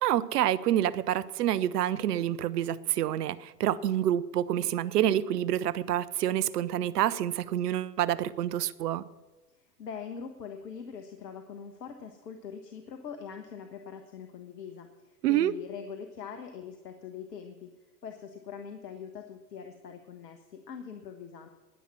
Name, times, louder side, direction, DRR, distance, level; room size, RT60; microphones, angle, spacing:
voice 1, 0.0-9.0 15.2-15.5, right 12 dB, 70° right, 19 dB, 0.8 m, -27 dB
voice 2, 9.8-17.7 18.0-21.5, left 7 dB, 80° left, 6 dB, 1.4 m, -43 dB
20.0 x 7.5 x 5.8 m, 1.1 s
hypercardioid pair, 100°, 48 cm